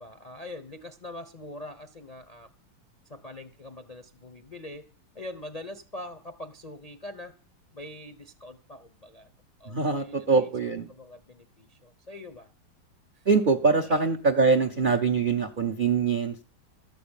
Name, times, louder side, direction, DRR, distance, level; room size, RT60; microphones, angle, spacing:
voice 1, 0.0-2.5 3.1-4.8 5.1-7.3 7.7-9.3 9.6-10.5 10.9-12.5 13.1-13.2 13.8-14.0, left 1 dB, 50° left, 7 dB, 0.4 m, -43 dB
voice 2, 9.6-10.9 13.3-16.5, right 4 dB, 65° right, 9 dB, 0.5 m, -23 dB
13.0 x 6.0 x 8.9 m, 0.39 s
omnidirectional pair, 2.2 m